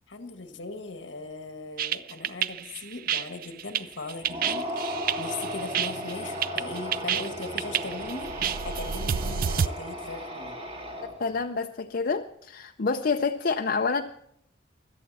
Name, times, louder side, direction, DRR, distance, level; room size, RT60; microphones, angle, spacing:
voice 1, 0.1-8.3 8.6-10.6, left 3 dB, 80° left, 6 dB, 1.6 m, -39 dB
sound 1, 1.8-9.7, right 8 dB, 50° right, 0.4 m, -29 dB
sound 2, 4.2-11.4, equal, 35° right, 2.3 m, -36 dB
voice 2, 11.2-14.0, left 4 dB, 55° left, 5 dB, 0.6 m, -27 dB
25.0 x 8.5 x 4.1 m, 0.69 s
head